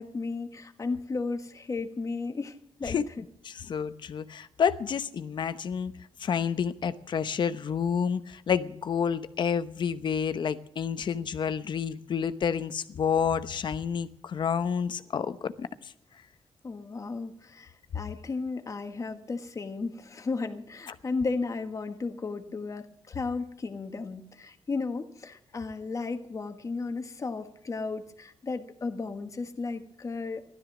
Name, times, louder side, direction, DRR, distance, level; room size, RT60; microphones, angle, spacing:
voice 1, 0.0-3.0 16.6-30.4, left 4 dB, 35° left, 7 dB, 1.5 m, -34 dB
voice 2, 3.4-5.9 6.2-15.7, left 7 dB, 55° left, 12 dB, 0.9 m, -29 dB
15.5 x 12.5 x 6.1 m, 0.69 s
cardioid pair, 100°, 9 cm